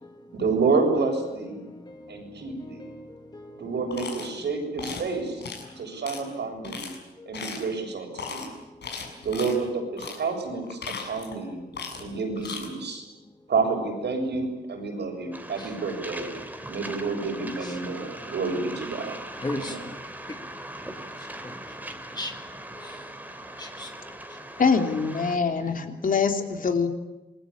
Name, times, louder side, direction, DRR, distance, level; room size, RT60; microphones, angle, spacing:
voice 1, 0.3-1.7 2.1-3.0 3.6-5.4 5.8-6.9 7.3-8.5 9.2-11.6 12.0-13.0 13.5-16.3 16.7-19.1 19.5-19.8, right 4 dB, 85° right, 3 dB, 7.3 m, -29 dB
voice 2, 1.7-2.1 2.6-3.6 7.2-7.3 15.6-15.7 17.6-17.7 19.4-20.0 21.2-21.5 22.1-22.3 22.8-23.0 23.6-23.9 24.3-24.4, left 2 dB, 25° left, 4 dB, 1.7 m, -38 dB
sound 1, 3.9-4.3 4.8-5.1 5.4-5.6 6.0-6.2 6.6-6.9 7.3-7.7 8.1-8.5 8.8-9.6 10.0-10.2 10.6-11.4 11.7-12.1 12.4-12.7, left 5 dB, 85° left, 6.9 m, -36 dB
Waves surf, 15.3-25.4, right 1 dB, 10° right, 2.7 m, -40 dB
voice 3, 24.6-26.9, left 5 dB, 50° left, 5 dB, 3.1 m, -24 dB
28.0 x 21.5 x 8.7 m, 1.0 s
wide cardioid pair, 125°, 17 cm